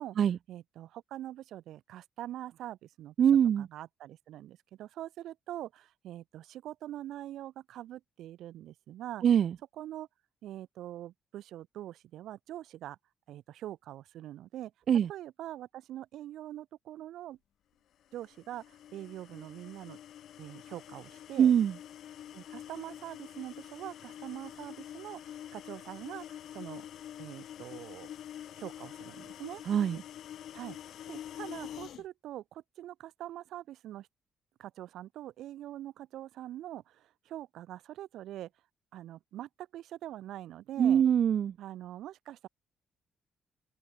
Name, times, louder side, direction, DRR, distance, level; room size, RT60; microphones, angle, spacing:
voice 1, 0.5-3.1 3.6-9.2 9.7-10.1 10.4-13.0 13.3-14.7 15.1-17.4 18.1-20.0 20.4-21.5 22.3-26.9 27.2-28.1 28.5-29.6 30.5-34.1 34.6-38.5 38.9-41.0 41.6-42.5, right 13 dB, 80° right, 4.4 m, -44 dB
voice 2, 3.2-3.7 9.2-9.5 14.9-15.1 21.4-21.7 29.7-30.0 40.8-41.5, right 8 dB, 60° right, 1.2 m, -23 dB
sound 1, 18.1-32.0, left 11 dB, 70° left, 6.0 m, -46 dB
cardioid pair, 90°, 0 cm